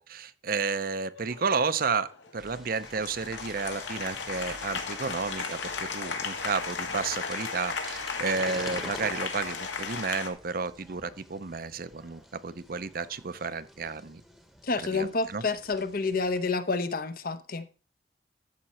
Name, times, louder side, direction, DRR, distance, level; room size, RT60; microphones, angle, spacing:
voice 1, 0.0-14.2 14.9-15.4, right 4 dB, 50° right, 0.6 m, -32 dB
Applause, 1.2-10.3, left 5 dB, 80° left, 1.9 m, -36 dB
sound 1, 2.4-16.4, equal, ahead, 1.0 m, -49 dB
voice 2, 14.6-17.6, left 4 dB, 50° left, 0.9 m, -29 dB
12.5 x 7.3 x 4.3 m
head